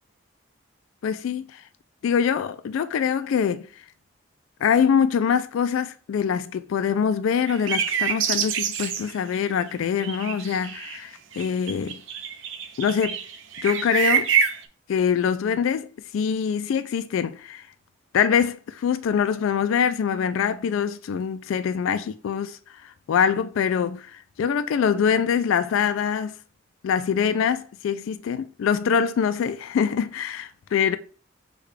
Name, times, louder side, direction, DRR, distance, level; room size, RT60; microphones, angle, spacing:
voice 1, 1.0-1.6 2.0-3.7 4.6-12.0 12.8-13.2 13.6-14.3 14.9-17.6 18.1-26.4 26.8-31.0, left 7 dB, 80° left, 0.3 m, -24 dB
sound 1, 7.5-9.6 10.0-11.0 11.3-14.6, right 7 dB, 70° right, 0.5 m, -26 dB
6.3 x 2.3 x 3.2 m
head